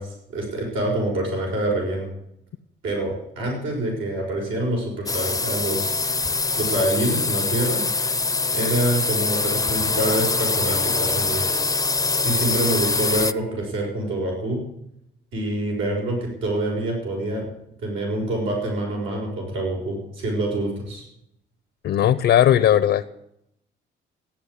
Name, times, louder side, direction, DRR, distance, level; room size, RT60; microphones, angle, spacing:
voice 1, 0.0-2.1 2.8-6.0 6.5-7.8 8.5-11.5 12.2-14.6 15.3-17.4 17.8-21.0, right 1 dB, 85° right, -1 dB, 6.3 m, -26 dB
sound 1, 5.1-13.3, left 3 dB, 15° left, 0.6 m, -24 dB
voice 2, 21.8-23.1, left 11 dB, 75° left, 10 dB, 0.9 m, -17 dB
15.0 x 10.5 x 8.5 m, 0.78 s
cardioid pair, 90°, 20 cm